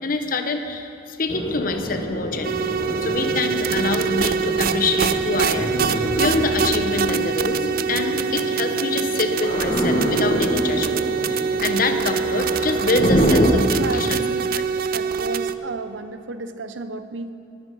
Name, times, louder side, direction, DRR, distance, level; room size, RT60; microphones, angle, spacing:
voice 1, 0.0-2.7 3.0-7.6 7.9-14.2 14.5-14.6, left 3 dB, 50° left, 6 dB, 1.0 m, -26 dB
sound 1, 1.3-13.5, equal, 30° left, 1.6 m, -26 dB
sound 2, 2.4-15.5, right 6 dB, 50° right, 0.4 m, -24 dB
voice 2, 13.7-14.5 14.9-17.3, right 3 dB, 85° right, 10 dB, 0.9 m, -32 dB
19.5 x 10.5 x 5.6 m, 2.8 s
head